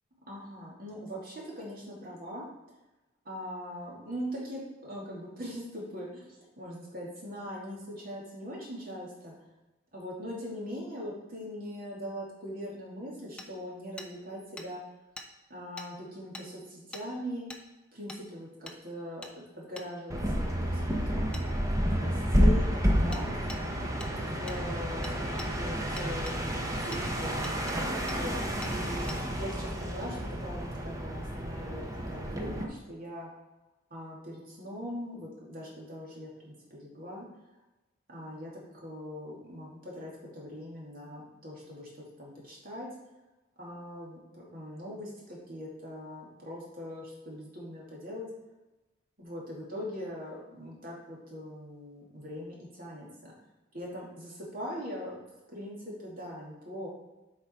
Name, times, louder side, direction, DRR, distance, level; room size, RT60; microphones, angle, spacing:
voice 1, 0.2-2.5 3.2-9.3 9.9-14.8 15.5-17.5 17.9-21.4 21.9-22.7 23.0-26.4 26.8-27.6 28.0-33.3 33.9-37.3 38.1-42.9 43.6-48.3 49.2-53.3 53.7-55.2 55.5-56.9, equal, 50° right, -4 dB, 2.5 m, -41 dB
Hammer, 13.4-13.5 14.0-14.1 14.6-14.7 15.2-15.3 15.8-15.9 16.3-16.5 16.9-17.1 17.5-17.6 18.1-18.2 18.7-18.8 19.2-19.3 19.8-19.9 21.3-21.5 23.1-23.2 23.5-23.6 24.0-24.1 24.5-24.6 25.0-25.5 26.0-26.4 26.9-27.0 27.4-27.8 28.1-28.2 28.6-28.7 29.1-29.2, left 1 dB, 5° left, 0.6 m, -43 dB
sound 1, 20.1-32.6, equal, 20° right, 0.9 m, -30 dB
8.0 x 5.3 x 4.4 m, 1.1 s
head